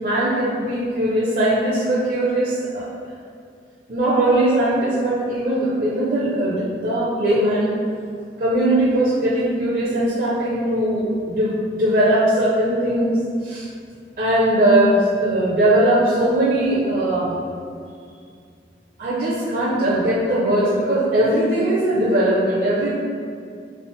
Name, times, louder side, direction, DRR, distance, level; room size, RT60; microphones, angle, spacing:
voice 1, 0.0-2.9 3.9-7.7 8.4-13.1 13.4-13.7 14.2-17.4 19.0-22.9, right 1 dB, 50° right, -8 dB, 0.5 m, -20 dB
3.2 x 2.8 x 3.0 m, 2.3 s
head